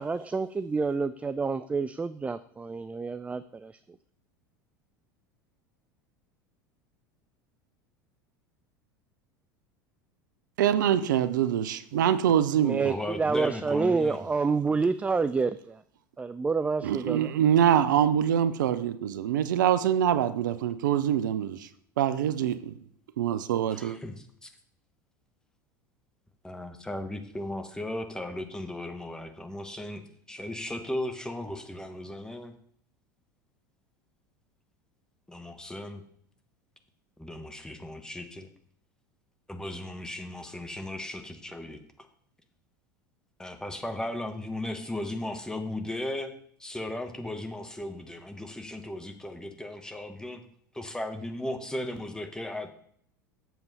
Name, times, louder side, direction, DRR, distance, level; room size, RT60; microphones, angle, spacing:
voice 1, 0.0-3.8 11.9-12.1 12.6-15.8 16.2-17.3, right 4 dB, 15° right, 0.3 m, -28 dB
voice 2, 10.6-12.9 16.8-21.7 22.0-22.8 23.2-24.0, right 10 dB, 70° right, 0.5 m, -24 dB
voice 3, 12.8-14.2 23.7-24.5 26.4-30.0 30.3-32.5 35.3-36.0 37.2-38.5 39.5-41.8 43.4-46.3 46.6-50.4 50.7-52.7, left 1 dB, 5° left, 1.1 m, -36 dB
7.7 x 7.0 x 4.1 m
hypercardioid pair, 80°, 11 cm